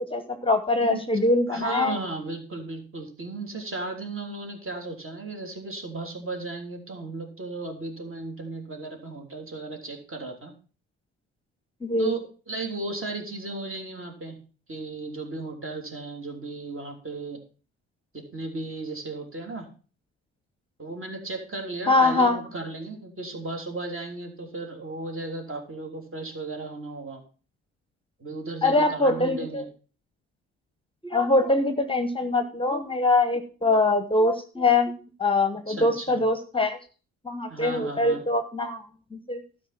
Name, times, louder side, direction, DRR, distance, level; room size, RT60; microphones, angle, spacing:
voice 1, 0.0-2.0 11.8-12.1 21.9-22.4 28.6-29.6 31.0-34.9 35.2-36.8 37.2-38.9 39.1-39.4, left 2 dB, 15° left, 8 dB, 1.1 m, -23 dB
voice 2, 1.5-10.5 12.0-14.4 14.7-17.4 18.3-19.7 20.8-27.2 28.2-29.6 35.7-36.2 37.5-38.2, right 2 dB, 35° right, 3 dB, 3.3 m, -35 dB
12.0 x 5.2 x 6.0 m, 0.37 s
hypercardioid pair, 50°, 37 cm